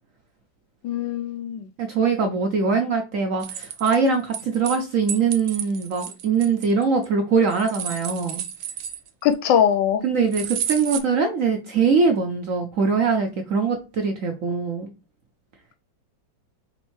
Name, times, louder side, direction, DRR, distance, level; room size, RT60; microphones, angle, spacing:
voice 1, 0.8-1.7 9.2-10.0, left 9 dB, 75° left, 1.2 m, -21 dB
voice 2, 1.8-8.4 10.0-14.9, right 5 dB, 60° right, 0.8 m, -22 dB
sound 1, 3.4-4.8 5.1-7.1 7.5-9.3 10.3-11.0, right 10 dB, 85° right, 1.4 m, -31 dB
5.2 x 3.2 x 3.1 m
omnidirectional pair, 2.1 m